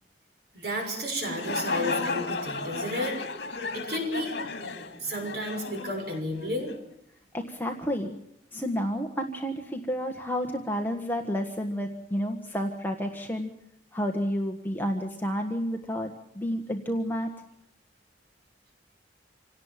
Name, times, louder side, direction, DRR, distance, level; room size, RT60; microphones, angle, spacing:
voice 1, 0.5-3.2 3.7-4.4 4.6-6.7, equal, 60° right, 3 dB, 6.3 m, -32 dB
sound 1, 1.1-6.8, left 3 dB, 65° left, 2.4 m, -34 dB
voice 2, 7.3-8.2 8.5-13.5 13.9-17.3, equal, 10° left, 3 dB, 1.5 m, -30 dB
27.5 x 18.0 x 7.4 m, 0.78 s
head